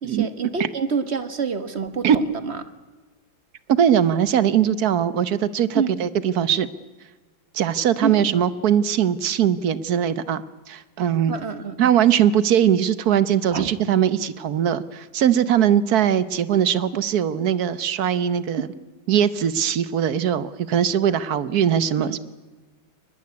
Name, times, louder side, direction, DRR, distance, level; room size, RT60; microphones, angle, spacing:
voice 1, 0.0-2.6 5.7-6.0 8.0-8.5 11.3-11.9 13.5-13.7 22.0-22.2, right 5 dB, 35° right, 11 dB, 1.4 m, -27 dB
voice 2, 3.7-6.7 7.5-11.3 11.8-18.7 19.1-22.2, right 9 dB, 60° right, 16 dB, 1.3 m, -20 dB
23.0 x 20.5 x 9.6 m, 1.3 s
omnidirectional pair, 2.1 m